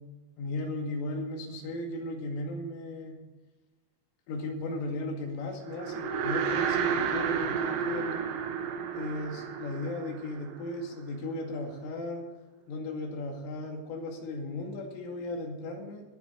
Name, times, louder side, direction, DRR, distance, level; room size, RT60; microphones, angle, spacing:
voice 1, 0.4-3.2 4.3-8.2 8.9-12.2 12.7-16.0, left 2 dB, 85° left, 2 dB, 4.7 m, -36 dB
sound 1, 5.7-11.1, right 7 dB, 70° right, 3.4 m, -31 dB
21.0 x 7.9 x 4.5 m, 1.1 s
omnidirectional pair, 5.6 m